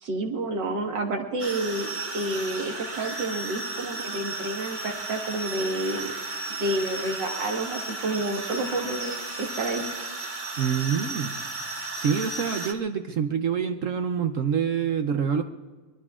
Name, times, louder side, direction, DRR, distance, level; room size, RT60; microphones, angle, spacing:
voice 1, 0.0-1.9 2.1-6.1 6.6-9.8, right 2 dB, 85° right, 1 dB, 2.3 m, -29 dB
sound 1, 1.4-12.7, right 2 dB, 30° right, 1.2 m, -34 dB
voice 2, 10.6-11.3 12.0-15.4, right 7 dB, 60° right, 7 dB, 0.8 m, -26 dB
23.5 x 21.5 x 2.4 m, 1.4 s
omnidirectional pair, 1.9 m